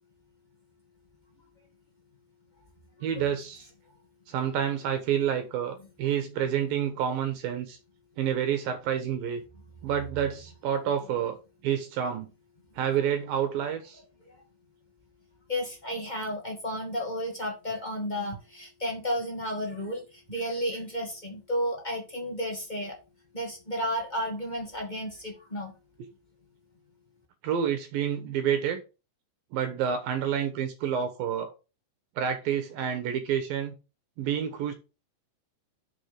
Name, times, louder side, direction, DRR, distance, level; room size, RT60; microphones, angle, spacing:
voice 1, 3.0-3.7 4.3-7.8 8.2-9.4 9.8-11.4 11.6-12.3 12.8-14.0 27.4-28.8 29.5-31.5 32.2-33.7 34.2-34.7, right 9 dB, 70° right, 2.7 m, -28 dB
voice 2, 15.5-22.9 23.3-25.7, equal, 35° left, 0.7 m, -32 dB
6.5 x 6.4 x 5.7 m
omnidirectional pair, 4.6 m